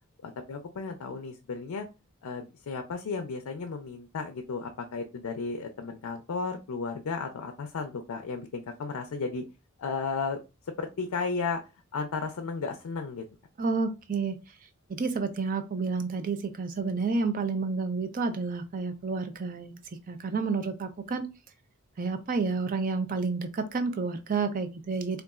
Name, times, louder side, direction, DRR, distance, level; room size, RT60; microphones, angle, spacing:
voice 1, 0.2-1.9 2.2-9.4 9.8-10.4 10.8-11.6 11.9-13.2, left 4 dB, 80° left, 0.4 m, -34 dB
voice 2, 13.6-14.4 14.9-19.8 20.1-21.2 22.0-25.2, right 4 dB, 40° right, 0.4 m, -30 dB
3.9 x 2.3 x 2.3 m
head